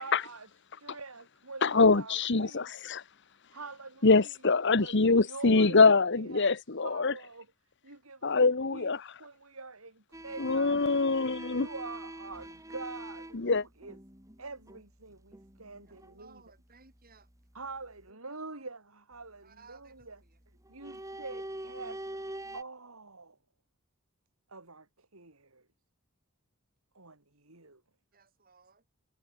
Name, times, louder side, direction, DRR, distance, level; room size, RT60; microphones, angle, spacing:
voice 1, 0.0-0.5 0.8-2.7 3.5-4.3 4.6-6.4 6.8-7.5 7.8-8.4 8.7-8.9 9.2-10.8 11.6-14.0 14.4-16.4 17.5-20.2 20.7-22.0 22.5-23.4 24.5-25.6 26.9-27.8, right 3 dB, 80° right, 4.7 m, -45 dB
voice 2, 1.6-3.0 4.0-7.1 8.2-9.0 10.4-11.7 13.3-13.6, left 4 dB, 55° left, 1.1 m, -24 dB
sound 1, 10.1-16.3 16.5-18.1 20.0-20.3 20.6-22.6, right 1 dB, 15° right, 3.7 m, -44 dB
voice 3, 15.8-17.3 18.1-18.6 19.4-20.4 28.1-28.8, right 4 dB, 45° right, 7.6 m, -60 dB
head